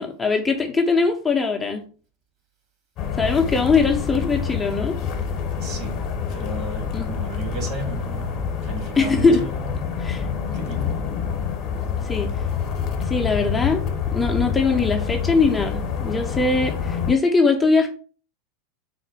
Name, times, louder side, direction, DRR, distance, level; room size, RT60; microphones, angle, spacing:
voice 1, 0.0-1.8 3.2-5.0 6.9-7.2 9.0-9.4 10.0-10.3 12.0-12.3 13.0-13.8 14.1-17.9, left 4 dB, 15° left, 3 dB, 0.6 m, -21 dB
sound 1, 3.0-17.1, left 7 dB, 45° left, 0.9 m, -27 dB
voice 2, 5.6-9.7 10.5-11.0, right 3 dB, 45° right, 3 dB, 1.6 m, -34 dB
4.1 x 2.1 x 4.5 m, 0.39 s
hypercardioid pair, 95°, 0 cm